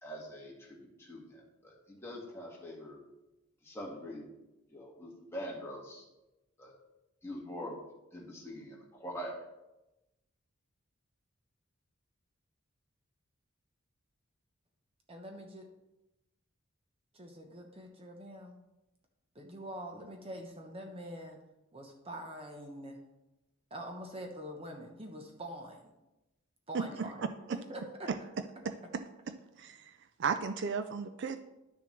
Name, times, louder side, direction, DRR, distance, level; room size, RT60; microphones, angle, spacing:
voice 1, 0.0-3.0 3.6-4.3 4.7-6.1 6.6-6.7 7.2-7.8 8.1-9.4, equal, 10° left, -4 dB, 1.8 m, -44 dB
voice 2, 15.1-15.7 17.1-18.6 19.3-21.4 21.7-23.0 23.7-25.9 26.7-27.2 27.5-28.1, equal, 25° right, 3 dB, 0.9 m, -45 dB
voice 3, 26.7-27.3 28.6-29.9 30.2-31.4, right 5 dB, 55° right, 9 dB, 0.4 m, -35 dB
11.5 x 6.8 x 3.2 m, 0.96 s
head